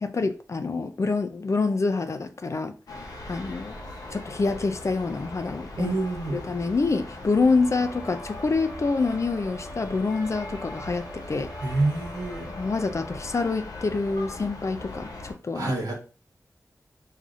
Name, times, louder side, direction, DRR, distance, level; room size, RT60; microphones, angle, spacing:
voice 1, 0.0-2.7 3.3-3.8 4.1-5.9 6.3-11.5 12.6-15.7, left 3 dB, 50° left, 0.4 m, -26 dB
sound 1, 2.9-15.3, left 2 dB, 90° left, 0.8 m, -40 dB
voice 2, 5.8-6.4 11.6-12.5 15.5-15.9, right 2 dB, 85° right, 1.1 m, -27 dB
sound 2, 7.4-13.5, right 1 dB, 10° right, 1.2 m, -46 dB
4.8 x 2.7 x 2.5 m
wide cardioid pair, 65°, 6 cm